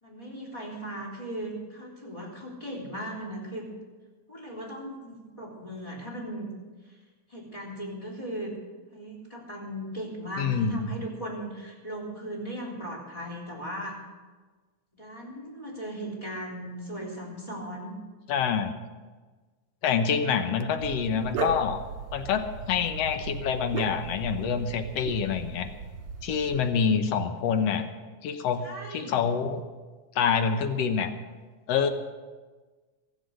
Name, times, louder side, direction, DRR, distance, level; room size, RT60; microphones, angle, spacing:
voice 1, 0.0-3.7 4.3-6.5 7.3-8.6 8.9-14.0 14.9-17.9 28.6-29.2, equal, 10° left, -3 dB, 3.4 m, -38 dB
voice 2, 10.4-10.9 18.3-18.7 19.8-21.8 22.1-25.7 26.2-27.9 28.2-28.6 28.9-29.6 30.2-31.1 31.7-31.9, left 6 dB, 65° left, 8 dB, 1.9 m, -26 dB
Dog, 20.8-26.7, right 5 dB, 60° right, 2.7 m, -37 dB
23.5 x 8.2 x 6.5 m, 1.3 s
omnidirectional pair, 3.6 m